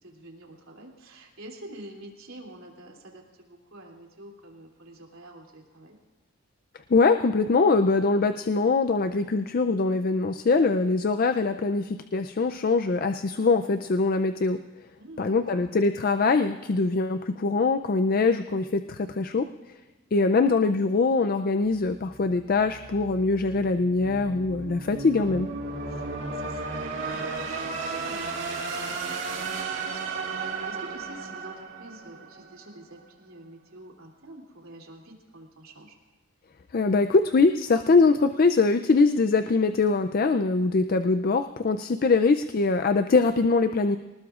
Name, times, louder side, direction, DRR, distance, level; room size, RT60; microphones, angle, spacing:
voice 1, 0.0-6.0 15.0-15.6 25.9-36.0, right 1 dB, 80° right, 0 dB, 2.9 m, -47 dB
voice 2, 6.9-14.6 15.2-19.5 20.1-25.5 36.7-44.0, left 3 dB, 45° left, 9 dB, 0.4 m, -23 dB
sound 1, 21.7-32.7, right 4 dB, 60° right, 2.0 m, -34 dB
24.5 x 19.5 x 2.5 m, 1.2 s
head